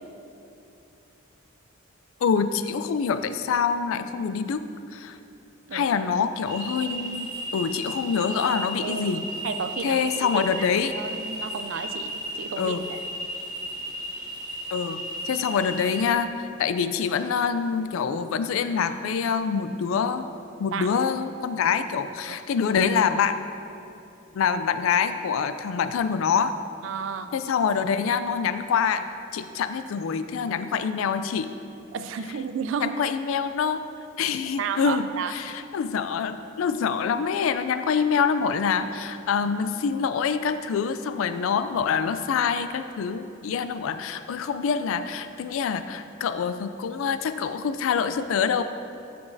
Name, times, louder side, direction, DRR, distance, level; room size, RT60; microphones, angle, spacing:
voice 1, 2.2-4.6 4.9-5.2 5.7-7.3 7.5-9.2 9.8-10.9 12.6-12.8 14.7-20.3 20.6-23.4 24.3-26.5 27.3-29.1 29.3-31.5 32.7-33.8 34.2-48.6, left 6 dB, 70° left, 11 dB, 0.3 m, -25 dB
sound 1, 6.5-16.0, right 1 dB, 20° right, 0.8 m, -35 dB
voice 2, 9.4-13.0 20.7-20.9 22.3-22.4 26.8-27.3 31.9-32.9 34.6-35.3, right 6 dB, 60° right, 9 dB, 0.3 m, -32 dB
8.8 x 6.0 x 2.6 m, 2.8 s
head